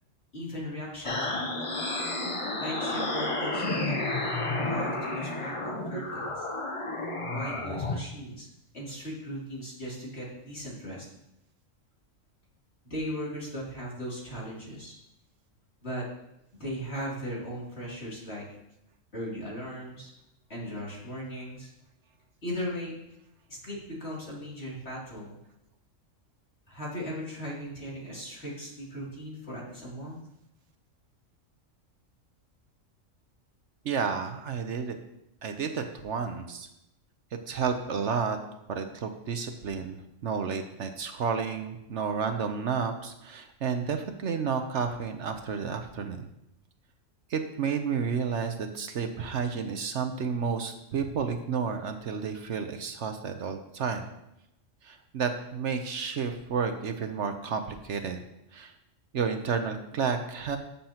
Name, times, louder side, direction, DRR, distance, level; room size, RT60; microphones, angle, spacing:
voice 1, 0.3-1.6 2.6-4.0 4.5-6.5 7.3-8.5 8.7-11.1 12.9-14.9 15.8-16.0 16.6-18.4 19.1-20.1 20.5-21.7 22.4-23.0 23.5-25.4 26.7-30.2, equal, 55° left, -5 dB, 3.2 m, -38 dB
sound 1, 1.0-8.0, left 2 dB, 30° left, 0.8 m, -31 dB
voice 2, 33.8-35.0 35.4-36.7 37.5-38.4 38.7-46.3 47.3-54.1 54.8-58.2 58.5-58.7 59.1-60.6, right 6 dB, 65° right, 6 dB, 1.0 m, -31 dB
13.0 x 7.1 x 2.9 m, 0.83 s
omnidirectional pair, 1.3 m